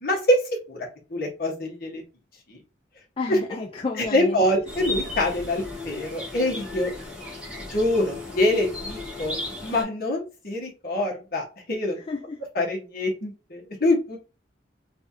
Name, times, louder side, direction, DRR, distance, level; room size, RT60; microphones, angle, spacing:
voice 1, 0.0-0.4 0.7-0.8 1.1-2.0 2.5-2.6 3.3-3.4 3.9-6.9 7.7-9.3 9.6-12.0 12.5-14.2, left 1 dB, 50° left, 1.4 m, -25 dB
voice 2, 3.2-4.4 12.1-12.4, left 3 dB, 30° left, 0.3 m, -31 dB
sound 1, 4.7-9.8, left 2 dB, 5° right, 1.5 m, -35 dB
3.4 x 3.3 x 2.8 m
head